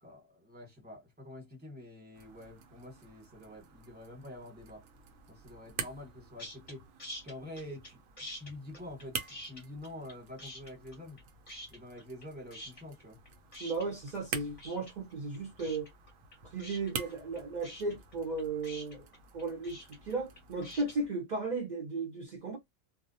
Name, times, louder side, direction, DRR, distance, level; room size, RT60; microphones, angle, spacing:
voice 1, 0.0-4.8 5.3-6.8 7.2-8.0 8.3-9.2 9.5-11.2 11.7-13.2, left 1 dB, 10° right, 1.0 m, -47 dB
sound 1, 2.1-21.1, right 6 dB, 90° right, 1.0 m, -47 dB
sound 2, 6.4-6.7 7.0-7.9 8.2-10.1 10.4-11.2 11.5-12.2 12.5-21.0, equal, 35° left, 0.7 m, -46 dB
voice 2, 13.6-15.9 16.4-19.1 19.3-22.6, right 3 dB, 45° right, 0.6 m, -35 dB
2.3 x 2.1 x 2.6 m
omnidirectional pair, 1.3 m